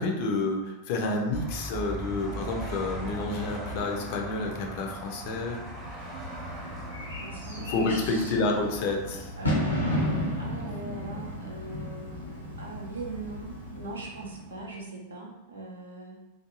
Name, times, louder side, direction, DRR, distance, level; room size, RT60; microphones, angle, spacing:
voice 1, 0.0-5.6 7.6-9.3, left 2 dB, 45° left, 1 dB, 0.5 m, -29 dB
sound 1, 1.3-9.7, right 2 dB, 20° right, 0.7 m, -39 dB
Bird / Fireworks, 5.4-14.6, left 1 dB, 85° left, 0.8 m, -34 dB
voice 2, 7.2-16.2, right 3 dB, 75° right, -2 dB, 0.6 m, -41 dB
2.5 x 2.4 x 2.8 m, 1.0 s
figure-of-eight pair, 90°, 0 cm